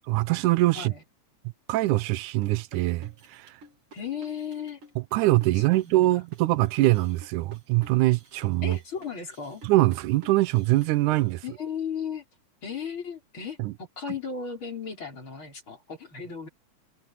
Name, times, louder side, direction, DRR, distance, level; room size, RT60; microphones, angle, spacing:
voice 1, 0.1-0.9 1.7-3.5 5.1-8.8 9.6-11.4 13.6-13.7, right 18 dB, 90° right, 2.1 m, -23 dB
sound 1, 1.8-11.3, right 2 dB, 50° right, 3.4 m, -51 dB
voice 2, 3.9-4.8 5.5-6.1 8.6-9.6 11.4-12.2 12.6-16.5, left 6 dB, 40° left, 5.7 m, -35 dB
omnidirectional pair, 3.4 m